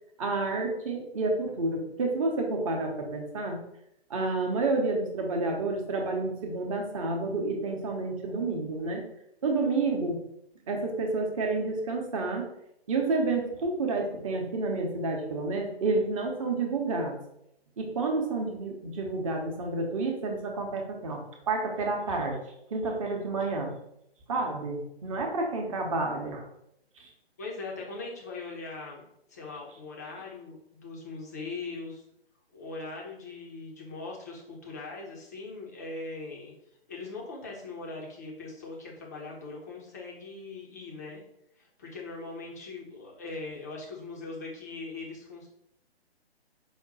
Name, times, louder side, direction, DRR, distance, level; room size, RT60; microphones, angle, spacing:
voice 1, 0.2-3.6 4.1-9.0 9.4-10.2 10.7-12.5 12.9-17.2 17.8-22.4 22.7-23.8 24.3-26.5 27.0-27.1, right 3 dB, 35° right, 1 dB, 0.8 m, -29 dB
voice 2, 27.4-32.0 32.5-36.5 36.9-41.2 41.6-45.5, left 3 dB, 15° left, -2 dB, 0.4 m, -40 dB
5.1 x 2.1 x 3.8 m, 0.77 s
figure-of-eight pair, 135°, 32 cm